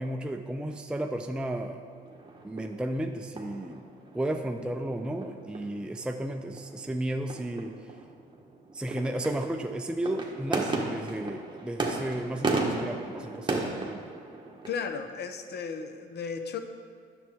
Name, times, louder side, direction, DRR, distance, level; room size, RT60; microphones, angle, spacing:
voice 1, 0.0-1.8 2.4-3.8 4.1-7.7 8.7-14.1, right 1 dB, 5° right, 4 dB, 0.5 m, -33 dB
sound 1, 1.9-14.8, right 3 dB, 20° right, 1.4 m, -35 dB
voice 2, 14.7-16.6, left 6 dB, 55° left, 8 dB, 0.8 m, -35 dB
9.4 x 7.2 x 3.5 m, 2.1 s
supercardioid pair, 70°, 20 cm